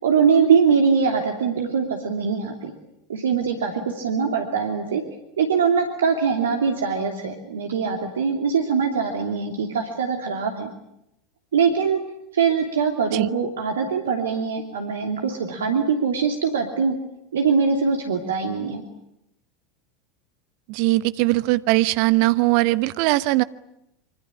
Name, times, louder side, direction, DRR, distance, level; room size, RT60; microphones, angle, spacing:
voice 1, 0.0-2.7 3.1-5.0 5.4-10.7 11.5-12.0 12.3-17.0 17.3-18.8, right 6 dB, 70° right, 4 dB, 2.9 m, -22 dB
voice 2, 20.7-23.4, right 19 dB, 50° right, 15 dB, 1.1 m, -20 dB
26.0 x 25.0 x 8.7 m, 0.83 s
figure-of-eight pair, 80°, 0 cm